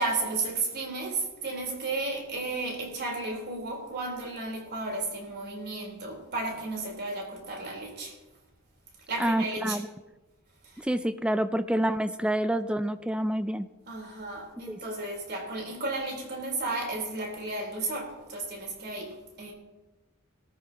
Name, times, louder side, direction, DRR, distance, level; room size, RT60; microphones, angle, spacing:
voice 1, 0.0-8.2 9.1-9.8 10.6-10.9 13.9-19.5, right 2 dB, 50° right, -1 dB, 4.1 m, -33 dB
voice 2, 9.2-9.9 10.8-13.7 14.7-14.8, right 1 dB, 5° right, 11 dB, 0.4 m, -28 dB
20.5 x 13.5 x 3.0 m, 1.1 s
head